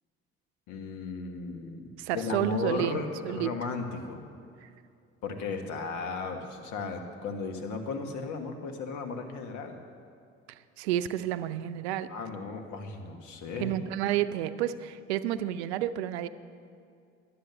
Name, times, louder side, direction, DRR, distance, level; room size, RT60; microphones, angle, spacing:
voice 1, 0.7-4.2 5.2-9.8 12.1-13.8, left 4 dB, 65° left, 5 dB, 1.5 m, -35 dB
voice 2, 2.0-3.5 10.8-12.1 13.6-16.3, right 12 dB, 85° right, 13 dB, 0.5 m, -30 dB
12.0 x 7.7 x 6.8 m, 2.4 s
hypercardioid pair, 60°, 32 cm